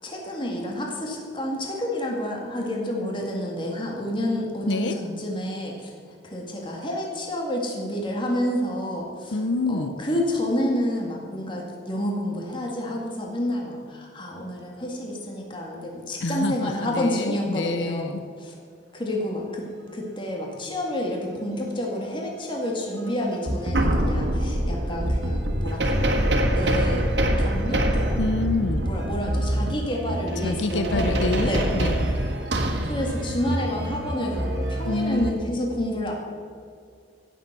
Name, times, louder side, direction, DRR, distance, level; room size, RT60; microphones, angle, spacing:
voice 1, 0.0-5.9 6.2-18.5 18.9-19.7 19.9-25.9 26.5-27.1 27.4-28.2 28.8-31.7 32.8-36.1, left 1 dB, 30° left, -1 dB, 2.1 m, -29 dB
voice 2, 9.3-9.9 16.2-18.2 28.2-28.8 30.4-32.1 34.8-35.4, left 3 dB, 85° left, 9 dB, 0.7 m, -27 dB
sound 1, 22.9-23.1 23.4-35.3, right 1 dB, 75° right, 1.7 m, -25 dB
16.0 x 7.3 x 6.8 m, 2.2 s
head